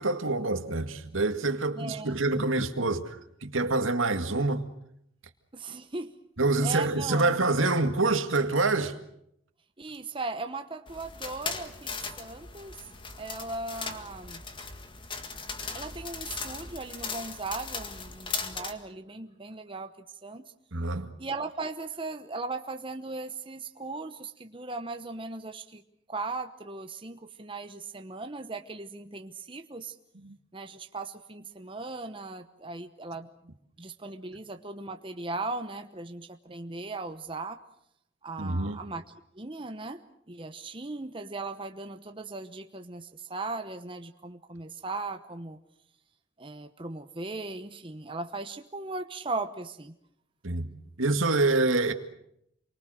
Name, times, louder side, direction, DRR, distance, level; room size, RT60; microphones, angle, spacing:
voice 1, 0.0-3.2 3.4-4.7 6.4-9.0 20.7-21.1 30.2-30.3 38.4-38.8 50.4-50.7 51.0-51.9, right 3 dB, 75° right, 2.0 m, -26 dB
voice 2, 1.7-2.2 5.5-6.2 6.6-7.3 9.8-12.9 13.2-14.4 15.7-19.9 20.2-20.5 21.2-25.8 26.1-30.0 30.5-33.3 33.8-37.6 38.2-39.0 39.3-40.0 40.3-45.6 46.4-49.9, right 3 dB, 25° right, 1.0 m, -38 dB
sound 1, 10.9-18.7, left 4 dB, 25° left, 1.9 m, -38 dB
28.5 x 24.0 x 6.5 m
head